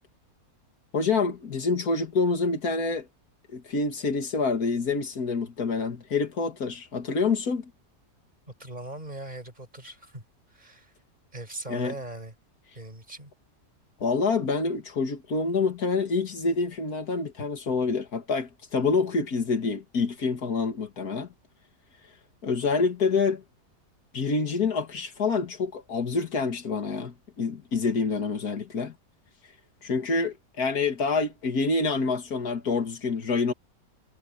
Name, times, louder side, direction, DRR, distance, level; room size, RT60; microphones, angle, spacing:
voice 1, 0.9-3.1 3.5-7.7 11.7-11.9 14.0-21.3 22.4-23.4 24.1-28.9 29.8-33.5, left 4 dB, 80° left, 2.6 m, -27 dB
voice 2, 8.6-10.2 10.5-10.9 11.3-12.3 12.8-13.3 22.5-22.9, right 2 dB, 30° right, 5.3 m, -40 dB
omnidirectional pair, 1.6 m